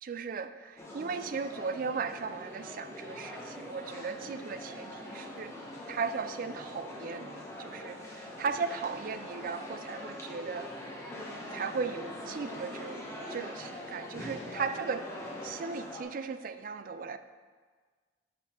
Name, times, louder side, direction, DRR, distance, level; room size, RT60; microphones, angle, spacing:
voice 1, 0.0-5.6 5.9-10.7 11.5-15.1 15.4-17.2, right 5 dB, 50° right, 11 dB, 0.3 m, -37 dB
sound 1, 0.8-16.0, left 1 dB, 15° left, 1.1 m, -43 dB
5.5 x 5.2 x 5.8 m, 1.5 s
head